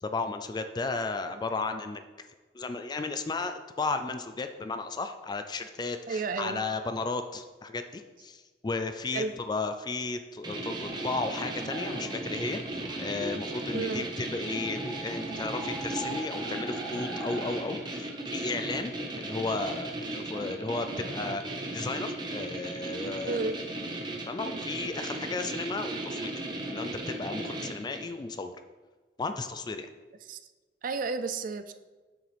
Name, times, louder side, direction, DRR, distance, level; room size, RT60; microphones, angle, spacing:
voice 1, 0.0-2.0 2.5-12.6 13.0-18.9 19.2-21.4 21.7-23.4 24.3-26.3 26.7-28.5 29.2-29.9, left 3 dB, 25° left, 8 dB, 0.3 m, -34 dB
voice 2, 6.1-6.6 9.1-9.3 13.7-14.0 23.2-23.6 30.2-30.4 30.8-31.7, right 4 dB, 50° right, 10 dB, 0.4 m, -32 dB
sound 1, 10.4-28.2, right 2 dB, 25° right, 0.9 m, -36 dB
sound 2, 10.9-19.9, right 1 dB, 5° left, 1.6 m, -43 dB
7.1 x 6.1 x 3.3 m, 1.3 s
head